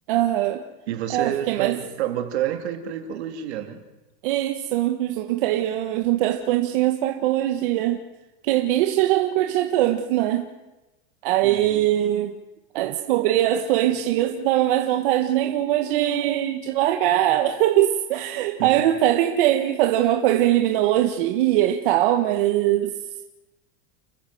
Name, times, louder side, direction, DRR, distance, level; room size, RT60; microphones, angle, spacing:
voice 1, 0.1-0.6 1.1-1.8 4.2-8.0 8.4-10.4 11.2-12.4 12.7-23.0, right 13 dB, 50° right, 1.4 m, -21 dB
voice 2, 0.9-3.8 11.4-11.8 18.6-18.7, right 11 dB, 75° right, 3.2 m, -29 dB
29.5 x 13.0 x 7.8 m
supercardioid pair, 175°, 33 cm